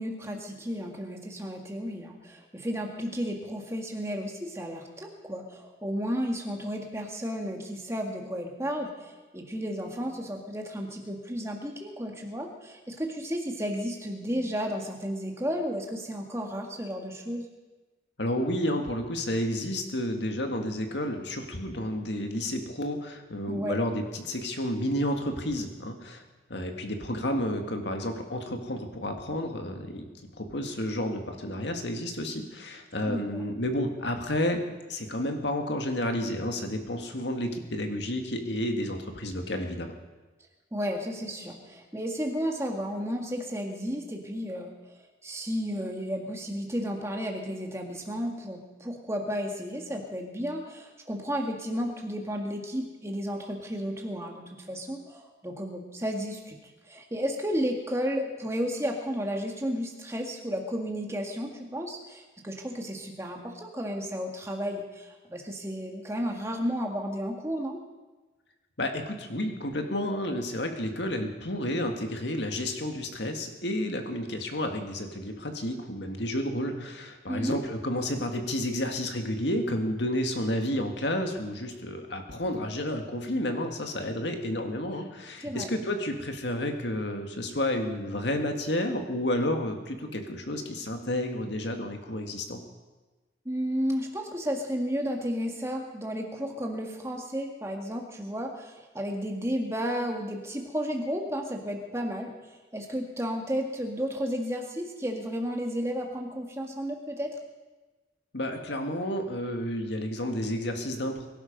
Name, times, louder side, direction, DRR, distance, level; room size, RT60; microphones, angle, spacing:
voice 1, 0.0-17.5 23.5-23.8 33.0-33.4 40.7-44.9 45.2-56.6 56.8-67.8 77.3-77.6 85.4-85.7 93.5-107.3, equal, 15° right, 2 dB, 1.9 m, -33 dB
voice 2, 18.2-26.2 26.5-30.1 30.4-34.6 34.9-39.9 68.8-92.6 108.3-111.3, left 1 dB, 65° left, 4 dB, 1.9 m, -31 dB
22.5 x 12.0 x 5.3 m, 1.2 s
head